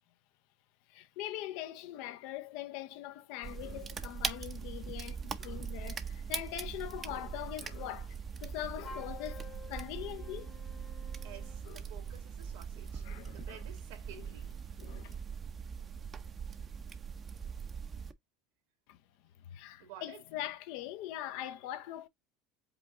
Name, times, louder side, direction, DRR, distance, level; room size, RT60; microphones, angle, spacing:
voice 1, 0.9-10.5 11.7-11.8 13.0-13.6 14.8-15.2 18.9-19.0 19.5-22.1, left 13 dB, 70° left, 0.6 m, -42 dB
sound 1, 3.4-18.1, right 6 dB, 30° right, 0.6 m, -41 dB
Wind instrument woodwind instrument, 8.8-11.7, left 5 dB, 30° left, 1.0 m, -51 dB
voice 2, 11.2-13.1 13.3-14.8 15.8-15.9 19.8-20.2, right 9 dB, 80° right, 2.2 m, -52 dB
5.1 x 2.3 x 3.6 m
supercardioid pair, 115°, 0 cm